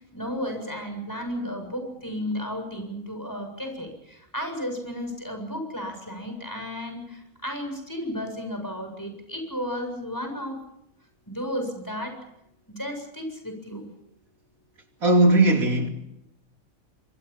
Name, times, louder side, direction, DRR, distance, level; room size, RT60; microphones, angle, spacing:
voice 1, 0.1-3.9 4.3-10.5 11.3-12.1 12.7-13.9, equal, 15° left, 7.5 m, -33 dB
voice 2, 15.0-15.9, right 2 dB, 85° right, 3.3 m, -18 dB
27.0 x 25.0 x 5.7 m
omnidirectional pair, 1.4 m